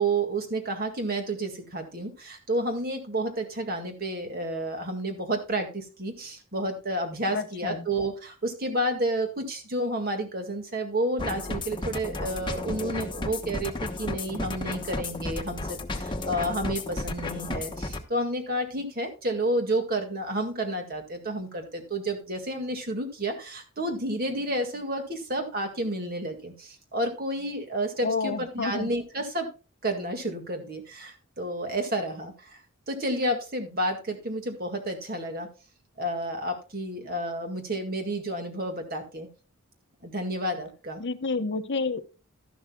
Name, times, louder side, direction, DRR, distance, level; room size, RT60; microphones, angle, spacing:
voice 1, 0.0-29.5 29.8-32.6 32.9-35.5 36.0-39.3 40.0-41.0, right 1 dB, 40° right, 4 dB, 1.9 m, -30 dB
voice 2, 7.3-7.8 28.0-28.9 41.0-42.0, left 4 dB, 50° left, 8 dB, 0.9 m, -29 dB
sound 1, 11.2-18.0, left 2 dB, 20° left, 1.1 m, -33 dB
13.0 x 11.5 x 2.3 m, 0.32 s
head